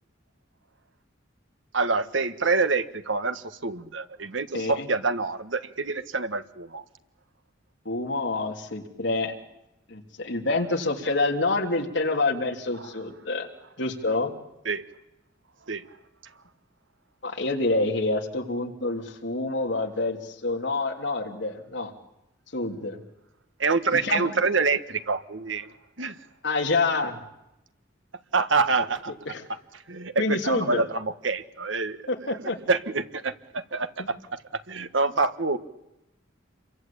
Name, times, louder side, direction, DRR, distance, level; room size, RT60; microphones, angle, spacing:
voice 1, 1.7-6.8 14.6-14.8 15.7-15.8 23.6-25.7 26.0-26.2 28.3-29.1 29.9-32.0 32.3-32.4 32.7-33.9 34.7-35.6, right 4 dB, 85° right, 11 dB, 1.5 m, -26 dB
voice 2, 4.5-4.9 7.8-9.3 9.9-13.5 13.8-14.3 17.2-21.9 22.5-23.0 23.9-24.3 26.4-27.2 29.1-29.4 30.2-30.9 32.1-32.6 34.0-34.1, left 2 dB, 70° left, 3 dB, 3.3 m, -27 dB
28.5 x 23.5 x 8.7 m, 0.91 s
head